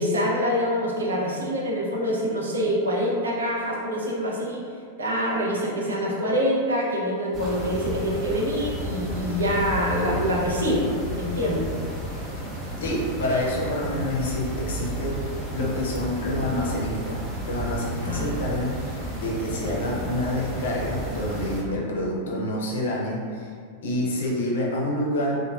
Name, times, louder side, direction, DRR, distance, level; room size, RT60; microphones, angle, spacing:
voice 1, 0.0-4.6 5.0-10.9 11.2-11.7 18.0-18.4, equal, 70° right, -3 dB, 0.5 m, -25 dB
sound 1, 7.3-21.6, right 1 dB, 10° right, 0.7 m, -32 dB
voice 2, 12.8-15.2 15.5-17.2 17.5-23.5 23.8-25.5, left 1 dB, 60° left, -3 dB, 0.5 m, -27 dB
2.9 x 2.1 x 2.3 m, 2.2 s
figure-of-eight pair, 90°, 0 cm